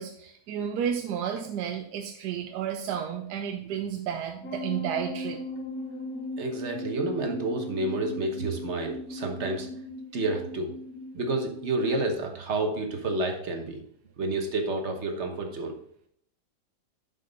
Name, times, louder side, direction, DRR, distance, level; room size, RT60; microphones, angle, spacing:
voice 1, 0.0-5.4, right 8 dB, 90° right, 4 dB, 1.2 m, -32 dB
sound 1, 4.4-11.9, left 1 dB, 65° left, 1.7 m, -38 dB
voice 2, 6.4-9.7 10.1-10.7 11.1-13.8 14.2-15.7, right 2 dB, 50° right, 4 dB, 1.3 m, -29 dB
7.6 x 5.4 x 3.9 m, 0.68 s
omnidirectional pair, 1.7 m